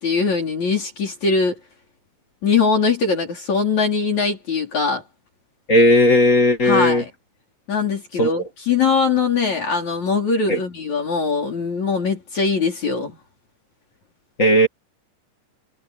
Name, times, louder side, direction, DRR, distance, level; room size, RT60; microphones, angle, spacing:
voice 1, 0.0-1.5 2.4-5.0 6.6-7.1 7.7-13.1, left 5 dB, 55° left, 5.7 m, -21 dB
voice 2, 5.7-7.0 8.2-8.3 10.5-10.6 14.4-14.7, left 1 dB, 30° left, 1.9 m, -15 dB
omnidirectional pair, 3.8 m